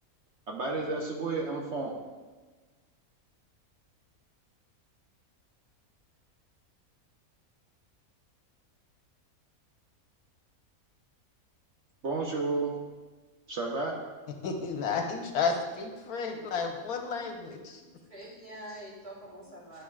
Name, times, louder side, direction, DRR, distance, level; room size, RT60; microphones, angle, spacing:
voice 1, 0.5-1.9 12.0-12.7 13.5-14.0, right 3 dB, 55° right, -2 dB, 1.1 m, -31 dB
voice 2, 14.4-17.8, left 5 dB, 85° left, 3 dB, 1.3 m, -32 dB
voice 3, 17.2-19.8, right 1 dB, 30° right, -7 dB, 2.6 m, -47 dB
10.5 x 6.7 x 2.4 m, 1.3 s
omnidirectional pair, 1.5 m